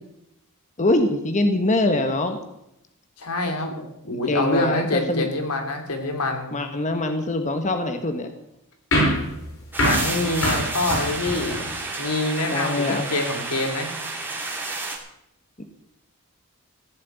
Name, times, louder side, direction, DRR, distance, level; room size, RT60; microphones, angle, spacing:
voice 1, 0.8-2.4 4.0-5.3 6.5-8.3 12.4-13.1, left 2 dB, 35° left, 7 dB, 1.4 m, -23 dB
voice 2, 3.2-6.5 9.8-11.6 12.0-13.9, left 2 dB, 90° left, 4 dB, 2.9 m, -26 dB
sound 1, 8.9-11.8, equal, 65° left, 7.0 m, -25 dB
sound 2, 9.7-15.0, right 3 dB, 10° right, 2.7 m, -30 dB
15.5 x 7.7 x 9.3 m, 0.82 s
head